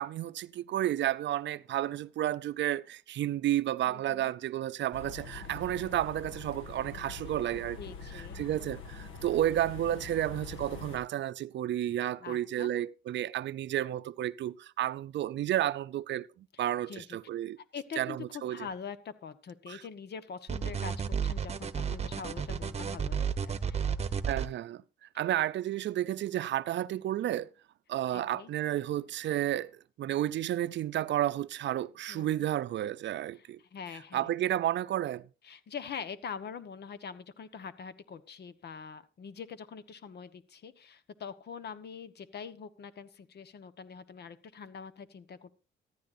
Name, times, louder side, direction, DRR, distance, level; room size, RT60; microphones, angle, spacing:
voice 1, 0.0-7.8 8.1-17.6 18.0-18.7 19.7-19.8 24.3-27.5 27.9-33.6 34.1-35.2, right 12 dB, 65° right, 0.5 m, -32 dB
voice 2, 3.9-4.3 7.8-8.4 12.2-12.7 16.9-17.2 17.6-23.9 28.1-28.5 32.1-32.5 33.4-34.3 35.4-45.5, left 6 dB, 55° left, 1.3 m, -44 dB
sound 1, 4.9-11.0, left 5 dB, 80° left, 2.6 m, -44 dB
sound 2, 20.5-24.5, right 7 dB, 30° right, 1.1 m, -32 dB
14.5 x 14.0 x 2.7 m
cardioid pair, 90°, 20 cm